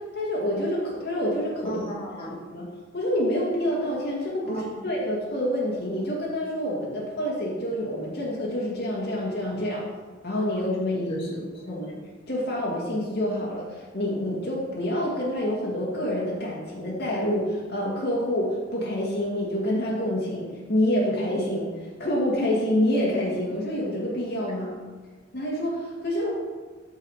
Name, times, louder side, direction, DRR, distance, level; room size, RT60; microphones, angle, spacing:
voice 1, 0.0-1.7 2.5-2.7 2.9-9.8 10.2-11.1 11.7-12.0 12.3-24.8 25.3-26.3, left 1 dB, 55° left, -4 dB, 2.3 m, -27 dB
voice 2, 1.6-2.4 4.4-4.9 10.9-11.7, right 1 dB, 30° left, -6 dB, 2.6 m, -35 dB
13.5 x 5.4 x 5.0 m, 1.4 s
head